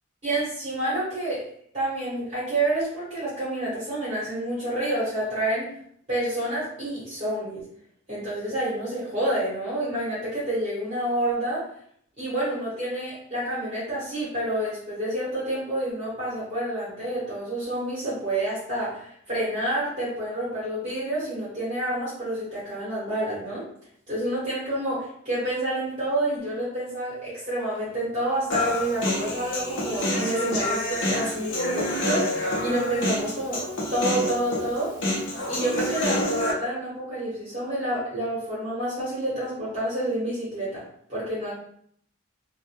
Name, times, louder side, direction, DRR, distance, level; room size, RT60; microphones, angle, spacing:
voice 1, 0.2-1.4 1.7-5.7 6.1-7.6 8.1-11.6 12.2-23.6 24.1-33.7 33.9-34.9 35.5-40.8 41.1-41.5, right 1 dB, 30° right, -9 dB, 1.0 m, -28 dB
Human voice, 28.5-36.5, left 1 dB, 65° left, 0.6 m, -27 dB
2.1 x 2.1 x 2.7 m, 0.67 s
head